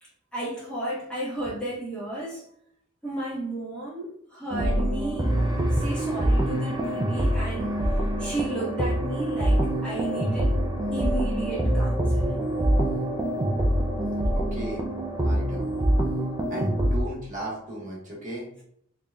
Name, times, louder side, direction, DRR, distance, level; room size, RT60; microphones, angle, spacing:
voice 1, 0.0-2.5 3.0-5.4 5.7-10.6 10.9-12.5, right 2 dB, 5° left, -9 dB, 1.1 m, -33 dB
sound 1, 4.5-17.0, right 1 dB, 20° right, 0.4 m, -25 dB
voice 2, 14.3-14.8 15.2-15.6 16.5-18.5, right 1 dB, 35° right, -4 dB, 1.2 m, -35 dB
3.8 x 3.3 x 2.2 m, 0.70 s
head